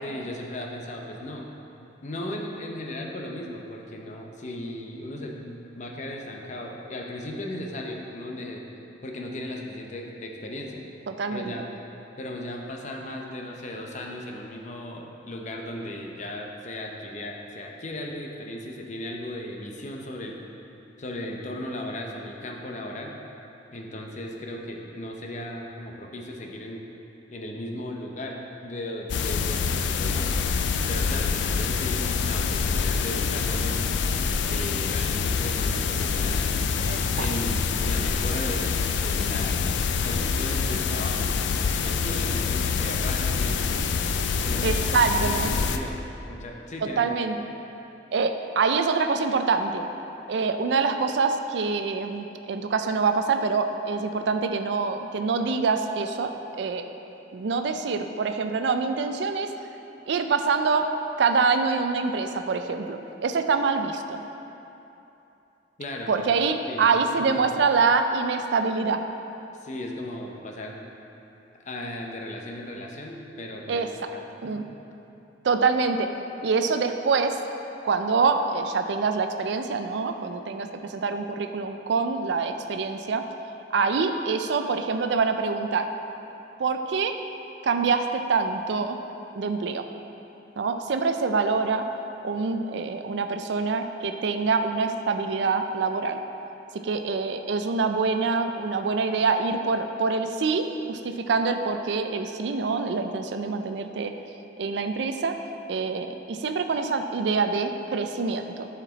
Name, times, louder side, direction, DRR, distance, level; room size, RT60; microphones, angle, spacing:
voice 1, 0.0-1.4 2.0-8.6 9.0-10.8 11.3-11.6 12.2-20.4 21.0-23.1 23.7-26.8 27.3-30.3 30.9-34.0 34.5-36.5 37.2-41.3 41.8-43.9 44.4-45.0 45.2-46.0 46.3-47.1 65.8-66.3 66.7-67.5 69.6-70.9 71.6-74.6, left 1 dB, 40° left, 1 dB, 0.7 m, -36 dB
voice 2, 11.1-11.5 36.9-37.3 44.6-45.5 47.0-47.4 48.1-49.9 50.3-56.3 56.6-56.8 57.3-59.5 60.1-60.9 61.2-64.2 66.1-69.0 73.7-73.9 74.4-74.6 75.4-76.1 76.4-77.4 77.8-83.2 83.7-85.9 86.6-87.1 87.6-89.0 89.3-89.8 90.6-91.8 92.2-96.2 96.8-104.1 104.6-105.4 105.7-108.7, right 4 dB, 65° right, 7 dB, 0.4 m, -25 dB
sound 1, 29.1-45.8, left 5 dB, 70° left, 0.4 m, -26 dB
7.4 x 5.8 x 3.9 m, 2.9 s
head